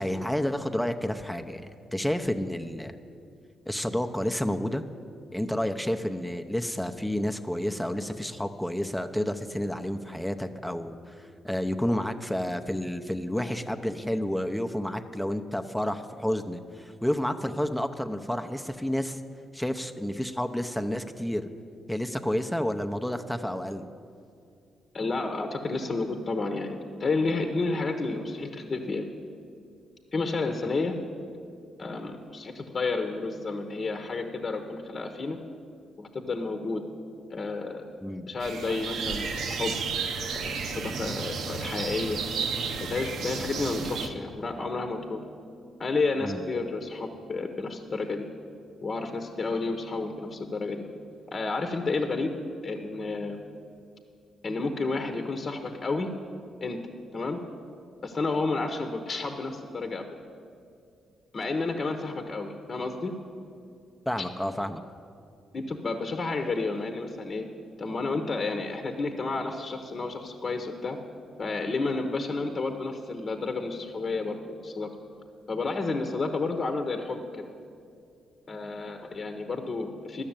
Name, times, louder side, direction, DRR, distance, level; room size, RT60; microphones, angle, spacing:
voice 1, 0.0-2.9 3.7-4.8 5.3-11.2 11.4-19.2 19.5-21.5 21.9-23.9 38.0-38.3 46.2-46.4 64.1-64.8, equal, 5° left, 7 dB, 0.7 m, -30 dB
voice 2, 24.9-29.1 30.1-30.9 31.8-35.4 36.0-36.8 37.3-37.8 38.3-39.7 40.3-42.2 42.8-45.2 45.8-48.3 48.8-50.8 51.3-52.3 52.6-53.4 54.4-56.1 56.6-56.8 57.1-57.4 58.0-60.0 61.3-63.1 65.5-67.4 67.8-71.0 71.4-74.9 75.5-77.4 78.5-80.2, left 3 dB, 45° left, 5 dB, 0.9 m, -31 dB
sound 1, 38.4-44.1, right 5 dB, 75° right, 0.8 m, -32 dB
12.0 x 6.4 x 8.8 m, 2.4 s
cardioid pair, 70°, 0 cm